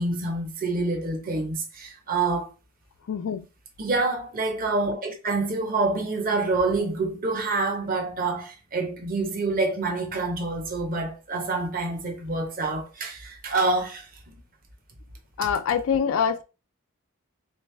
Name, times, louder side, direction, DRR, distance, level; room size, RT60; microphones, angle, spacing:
voice 1, 0.0-2.5 3.8-14.3, right 3 dB, 45° right, 0.9 m, -27 dB
voice 2, 3.1-3.4 15.4-16.4, left 7 dB, 80° left, 0.3 m, -24 dB
3.4 x 3.2 x 3.2 m
head